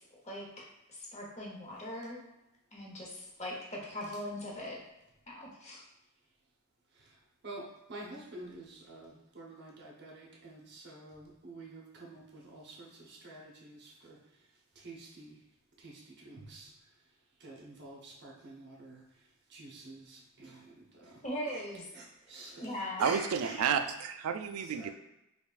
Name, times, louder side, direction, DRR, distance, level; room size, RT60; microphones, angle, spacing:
voice 1, 0.0-2.2 2.7-4.8 5.3-5.8 21.2-21.9 22.6-23.2, left 1 dB, 30° left, -3 dB, 0.9 m, -40 dB
voice 2, 7.4-14.2 14.8-15.4 15.8-16.7 17.4-19.0 19.5-21.2 21.9-22.7 23.0-23.6 24.6-24.9, right 2 dB, 50° right, -3 dB, 0.9 m, -48 dB
voice 3, 23.0-24.9, right 7 dB, 80° right, 8 dB, 0.3 m, -31 dB
5.3 x 2.3 x 2.4 m, 0.92 s
head